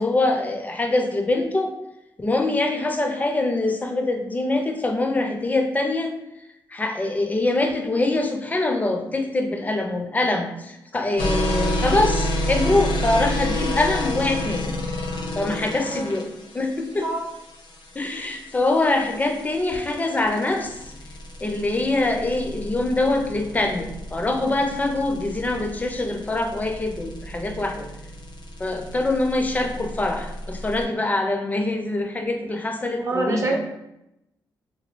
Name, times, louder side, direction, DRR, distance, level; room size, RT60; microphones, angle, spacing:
voice 1, 0.0-1.7 2.2-6.1 6.7-14.7 15.3-16.3 16.5-17.1 17.9-20.9 21.4-27.9 28.6-33.6, left 2 dB, 20° left, 4 dB, 0.4 m, -24 dB
sound 1, 11.2-30.8, left 1 dB, 70° left, 0.6 m, -30 dB
voice 2, 32.8-33.6, right 2 dB, 40° right, 1 dB, 0.5 m, -26 dB
2.9 x 2.2 x 3.0 m, 0.86 s
cardioid pair, 110°, 8 cm